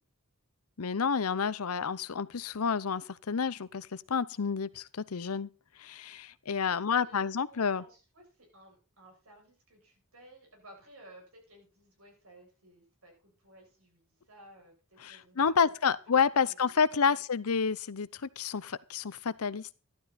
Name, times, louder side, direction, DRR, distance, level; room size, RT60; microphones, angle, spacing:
voice 1, 0.8-5.5 5.8-7.8 15.0-19.7, left 6 dB, 90° left, 0.7 m, -29 dB
voice 2, 6.8-16.0 16.3-17.2, right 1 dB, 70° right, 7.5 m, -57 dB
12.5 x 12.0 x 4.2 m
head